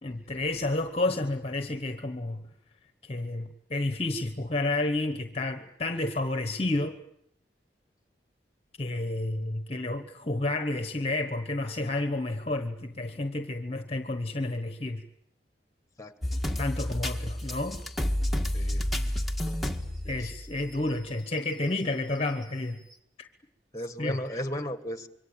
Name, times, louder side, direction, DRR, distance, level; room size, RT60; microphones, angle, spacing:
voice 1, 0.0-2.4 3.0-7.0 8.8-15.0 16.6-17.8 20.1-22.8 23.2-23.3 24.0-24.4, left 2 dB, 35° left, 8 dB, 1.1 m, -30 dB
voice 2, 16.0-16.6 18.5-18.8 20.0-20.2 23.7-25.1, equal, 20° left, 10 dB, 1.7 m, -36 dB
sound 1, 16.2-20.9 21.4-21.5 22.4-22.5, left 1 dB, ahead, 1.7 m, -30 dB
26.5 x 23.5 x 8.8 m, 0.75 s
head